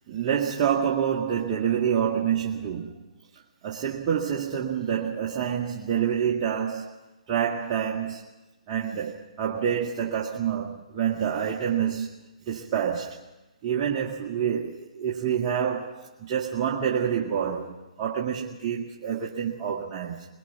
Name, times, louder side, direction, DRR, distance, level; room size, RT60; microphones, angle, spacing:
voice 1, 0.1-3.0 3.6-7.0 7.3-8.3 8.7-12.2 12.4-13.2 13.6-20.3, right 8 dB, 30° right, 1.9 m, -27 dB
22.5 x 22.0 x 5.8 m
hypercardioid pair, 150°, 4 cm